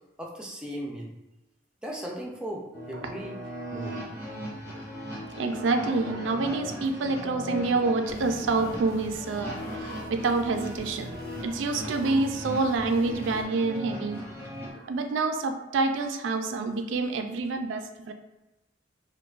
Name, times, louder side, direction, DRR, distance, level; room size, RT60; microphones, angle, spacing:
voice 1, 0.2-1.1 1.8-3.4 3.7-4.0, equal, 5° right, -2 dB, 0.3 m, -37 dB
sound 1, 2.7-14.7, equal, 10° left, 0.8 m, -38 dB
voice 2, 5.4-11.2 11.4-14.2 14.7-18.1, right 3 dB, 75° right, 6 dB, 0.4 m, -27 dB
sound 2, 8.1-13.4, left 1 dB, 50° left, 0.6 m, -44 dB
4.5 x 2.2 x 2.4 m, 1.0 s
head